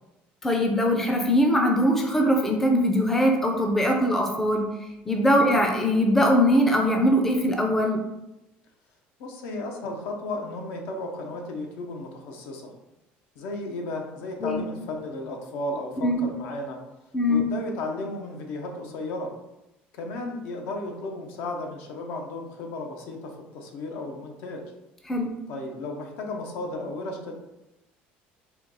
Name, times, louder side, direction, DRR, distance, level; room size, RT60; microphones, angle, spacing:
voice 1, 0.4-4.6 5.1-8.0 14.4-14.6 16.0-16.2 17.1-17.4 25.1-25.3, equal, 10° left, 2 dB, 0.4 m, -21 dB
voice 2, 9.2-12.7 13.4-16.8 17.3-19.3 19.9-24.6 25.5-27.3, left 2 dB, 70° left, 2 dB, 0.7 m, -34 dB
4.4 x 2.2 x 3.9 m, 0.94 s
cardioid pair, 155°, 4 cm